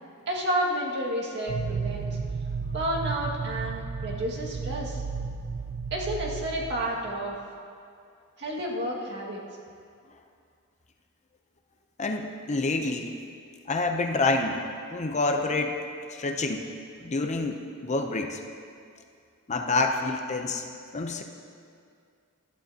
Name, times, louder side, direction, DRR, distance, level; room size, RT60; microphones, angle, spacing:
voice 1, 0.3-2.2 2.7-5.0 5.9-7.4 8.4-9.4, right 1 dB, 55° right, -3 dB, 2.0 m, -30 dB
sound 1, 1.5-7.4, right 5 dB, 75° right, 0.5 m, -33 dB
voice 2, 12.0-13.1 13.7-14.6 14.9-16.6 17.0-18.4 19.5-20.6 20.9-21.2, left 3 dB, 35° left, 4 dB, 0.7 m, -27 dB
19.5 x 11.5 x 2.9 m, 2.3 s
head